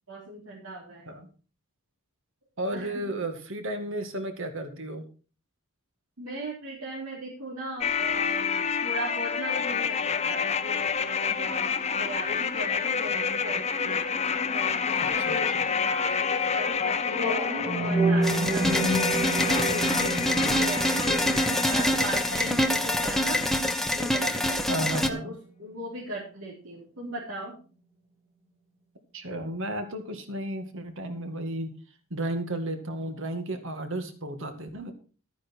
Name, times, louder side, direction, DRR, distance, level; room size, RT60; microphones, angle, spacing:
voice 1, 0.1-1.1 2.7-3.0 6.2-14.0 14.5-19.1 19.5-24.7 24.9-27.6, right 1 dB, 75° right, -5 dB, 3.8 m, -38 dB
voice 2, 2.6-5.0 14.9-15.6 24.7-25.4 29.1-31.7 32.1-34.9, right 1 dB, 60° right, 7 dB, 2.1 m, -33 dB
sound 1, 7.8-22.8 23.1-23.2, left 6 dB, 30° left, 0.8 m, -29 dB
sound 2, 17.1-25.1, right 2 dB, 25° right, 3.8 m, -30 dB
sound 3, 18.2-25.1, left 1 dB, ahead, 1.0 m, -26 dB
13.0 x 9.4 x 4.5 m, 0.37 s
head